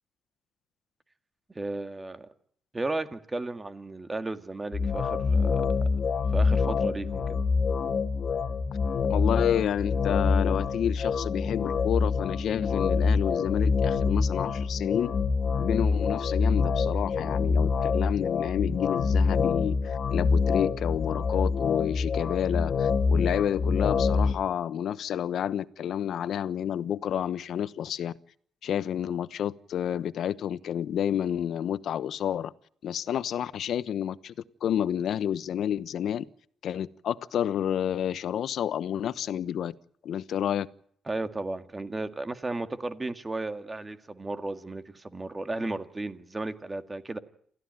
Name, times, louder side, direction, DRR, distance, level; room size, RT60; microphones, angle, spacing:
voice 1, 1.6-2.3 2.7-5.7 6.3-7.4 41.1-47.2, right 2 dB, 20° right, 1.9 m, -34 dB
sound 1, 4.7-24.3, left 5 dB, 45° left, 2.0 m, -26 dB
voice 2, 9.1-15.1 15.6-28.1 28.6-32.5 32.8-34.3 34.6-36.2 36.6-39.7 40.0-40.7, left 9 dB, 65° left, 1.0 m, -29 dB
28.5 x 15.5 x 9.2 m
cardioid pair, 115°, 0 cm